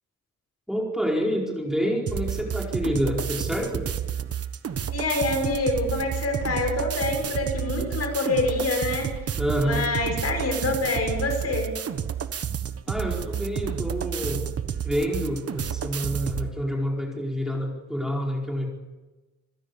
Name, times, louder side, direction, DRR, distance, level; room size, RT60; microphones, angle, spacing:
voice 1, 0.7-3.9 9.4-9.9 12.9-14.5 14.8-18.7, equal, ahead, -2 dB, 4.8 m, -28 dB
sound 1, 2.1-16.5, right 8 dB, 50° right, 1.3 m, -30 dB
voice 2, 4.9-9.1 9.6-11.7, left 2 dB, 55° left, 4 dB, 6.6 m, -26 dB
27.5 x 16.0 x 7.2 m, 1.1 s
cardioid pair, 115°, 31 cm